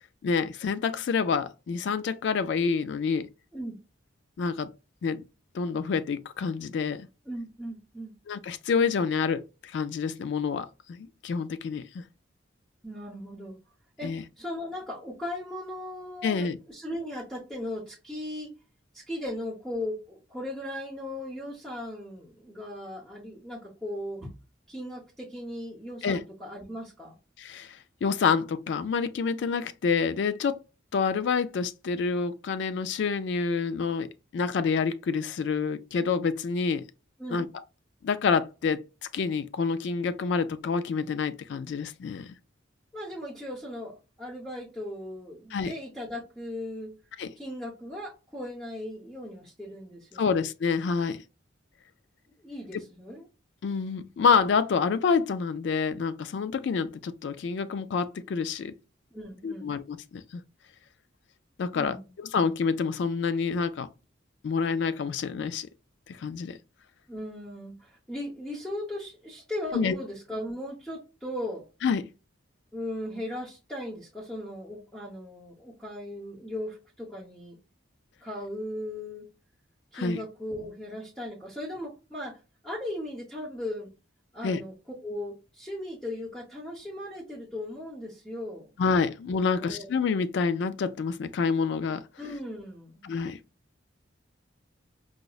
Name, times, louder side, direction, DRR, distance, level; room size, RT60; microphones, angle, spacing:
voice 1, 0.2-3.3 4.4-4.7 5.0-5.2 5.5-7.1 8.3-12.0 14.0-14.2 16.2-16.6 26.0-26.2 27.4-30.6 30.9-36.8 37.3-37.5 38.0-38.8 39.1-42.3 45.5-45.7 47.2-47.3 50.2-51.2 53.6-58.7 59.4-60.4 61.6-62.0 62.3-63.9 64.4-65.7 66.1-66.6 69.7-70.0 71.8-72.0 79.9-80.2 84.4-84.6 88.8-92.0 93.0-93.4, left 5 dB, 65° left, 0.3 m, -27 dB
voice 2, 7.3-8.1 12.8-13.6 14.0-18.5 18.9-24.3 24.7-27.1 37.2-37.5 42.9-46.9 47.4-50.4 52.4-53.2 59.1-59.8 61.7-62.1 67.1-71.7 72.7-77.5 78.2-79.3 79.9-83.9 84.3-84.7 85.0-88.7 89.5-89.9 92.2-93.0, left 1 dB, 5° left, 0.8 m, -37 dB
4.9 x 2.0 x 2.3 m
head